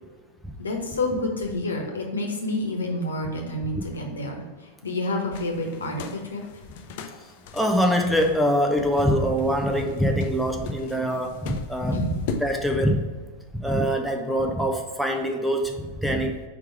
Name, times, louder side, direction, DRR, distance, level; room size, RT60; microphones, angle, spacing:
voice 1, 0.6-4.4 4.8-6.4 11.9-12.1, left 2 dB, 70° left, 2 dB, 1.1 m, -28 dB
sound 1, 5.3-12.5, left 5 dB, 50° left, 0.5 m, -39 dB
voice 2, 7.5-13.0 13.6-16.4, equal, ahead, 3 dB, 0.7 m, -24 dB
4.8 x 4.7 x 4.8 m, 1.4 s
figure-of-eight pair, 90°, 0 cm